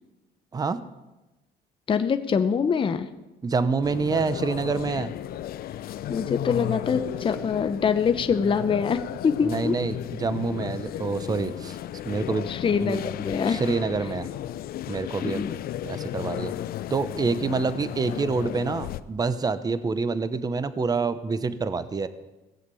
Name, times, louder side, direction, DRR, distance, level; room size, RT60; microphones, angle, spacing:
voice 1, 1.9-3.1 6.1-9.8 12.5-13.6 15.2-15.6, left 6 dB, 30° left, 9 dB, 0.8 m, -24 dB
voice 2, 3.4-5.1 9.4-11.8 12.0-12.5 12.8-13.0 13.5-14.3 14.9-15.5 15.8-16.5 16.9-22.1, right 4 dB, 20° right, 14 dB, 0.8 m, -27 dB
sound 1, 3.8-19.0, left 12 dB, 60° left, 0.6 m, -34 dB
17.0 x 7.3 x 8.3 m, 1.1 s
cardioid pair, 110°, 17 cm